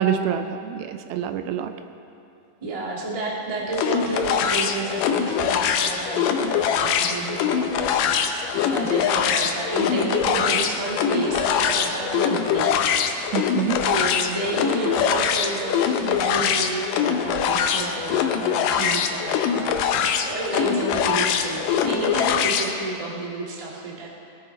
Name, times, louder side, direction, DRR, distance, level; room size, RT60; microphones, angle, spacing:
voice 1, 0.0-1.7 13.3-13.8, right 8 dB, 80° right, 8 dB, 2.5 m, -26 dB
voice 2, 2.6-12.8 13.8-24.1, right 3 dB, 20° right, -4 dB, 0.8 m, -30 dB
sound 1, 3.7-22.7, left 7 dB, 75° left, 2.1 m, -23 dB
20.5 x 11.0 x 4.4 m, 2.6 s
omnidirectional pair, 4.4 m